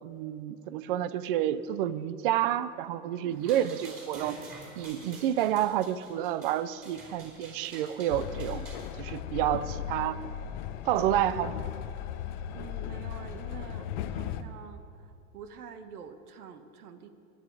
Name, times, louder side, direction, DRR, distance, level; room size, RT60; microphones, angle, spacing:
voice 1, 0.0-4.4 4.8-8.7 9.0-10.2 10.8-11.6, right 11 dB, 40° right, 16 dB, 0.4 m, -29 dB
voice 2, 3.0-3.4 9.8-10.8 12.5-17.1, right 6 dB, 80° right, 9 dB, 1.4 m, -47 dB
sound 1, 3.3-8.9, right 2 dB, 20° right, 3.9 m, -48 dB
Train, 8.1-14.4, left 10 dB, 35° left, 0.5 m, -37 dB
22.0 x 7.8 x 4.7 m, 2.7 s
supercardioid pair, 145°, 44 cm